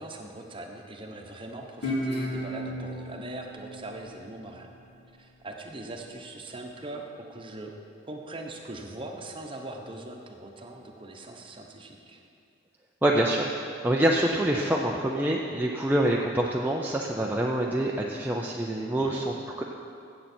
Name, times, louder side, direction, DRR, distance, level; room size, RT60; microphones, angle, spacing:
voice 1, 0.0-4.7 5.2-7.7 8.1-12.2 19.0-19.3, right 2 dB, 30° right, 2 dB, 1.0 m, -41 dB
Guitar, 1.8-5.0, equal, 60° left, 3.0 m, -34 dB
voice 2, 13.0-19.6, right 1 dB, 10° right, -2 dB, 0.5 m, -26 dB
15.0 x 7.6 x 4.4 m, 2.5 s
head